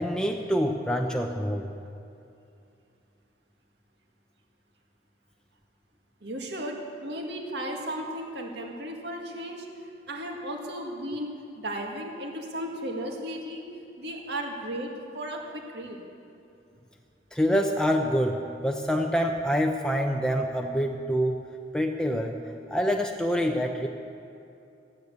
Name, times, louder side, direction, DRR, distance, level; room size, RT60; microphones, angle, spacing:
voice 1, 0.0-1.7 17.3-21.4 21.7-22.4 22.7-23.9, equal, 5° left, 2 dB, 0.6 m, -26 dB
voice 2, 6.2-9.7 10.1-11.3 11.6-13.6 14.0-16.0, right 1 dB, 65° right, 1 dB, 1.9 m, -35 dB
13.0 x 9.3 x 8.3 m, 2.6 s
head